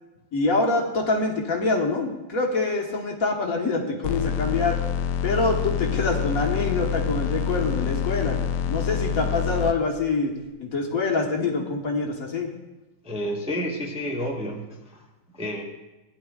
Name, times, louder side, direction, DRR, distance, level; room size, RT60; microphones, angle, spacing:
voice 1, 0.3-4.8 5.2-8.4 8.7-10.3 10.6-12.5, left 3 dB, 60° left, 0 dB, 1.8 m, -25 dB
sound 1, 4.0-9.7, left 8 dB, 80° left, 1.2 m, -27 dB
voice 2, 13.0-15.0 15.3-15.6, equal, 5° right, -1 dB, 1.0 m, -30 dB
17.5 x 10.0 x 2.4 m, 1.1 s
omnidirectional pair, 1.8 m